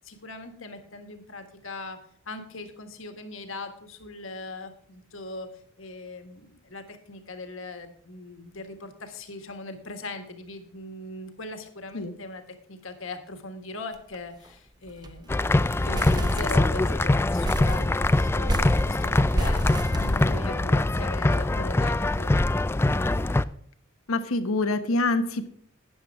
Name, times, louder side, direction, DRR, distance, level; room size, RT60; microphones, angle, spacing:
voice 1, 0.0-2.0 2.3-5.5 5.8-12.4 12.7-15.3 15.8-22.3, left 2 dB, 65° left, 7 dB, 1.7 m, -40 dB
sound 1, 13.9-14.2 14.4-14.5 14.9-15.2 15.6-17.0 17.4-20.7, right 1 dB, 20° right, 0.6 m, -31 dB
sound 2, 15.3-23.4, left 2 dB, 10° left, 0.3 m, -23 dB
voice 2, 24.1-25.5, left 2 dB, 85° left, 9 dB, 1.1 m, -25 dB
12.5 x 9.3 x 3.6 m, 0.63 s
head